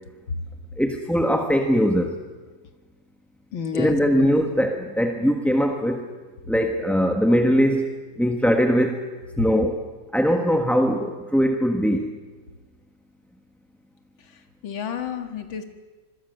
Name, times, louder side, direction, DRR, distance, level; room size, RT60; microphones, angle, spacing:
voice 1, 0.8-2.1 3.7-6.0 6.5-7.9 8.2-9.0 9.4-9.8 10.1-12.1, equal, ahead, 4 dB, 1.0 m, -21 dB
voice 2, 3.5-4.3 14.3-15.6, left 6 dB, 85° left, 7 dB, 2.6 m, -31 dB
26.5 x 21.0 x 6.5 m, 1.3 s
omnidirectional pair, 2.1 m